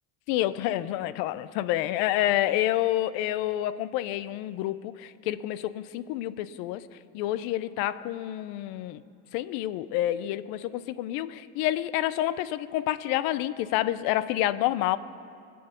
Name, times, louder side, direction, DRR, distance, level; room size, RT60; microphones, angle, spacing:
voice 1, 0.3-6.8 7.1-9.0 9.3-15.0, left 14 dB, 75° left, 16 dB, 0.6 m, -28 dB
19.5 x 7.9 x 6.8 m, 2.4 s
cardioid pair, 135°, 37 cm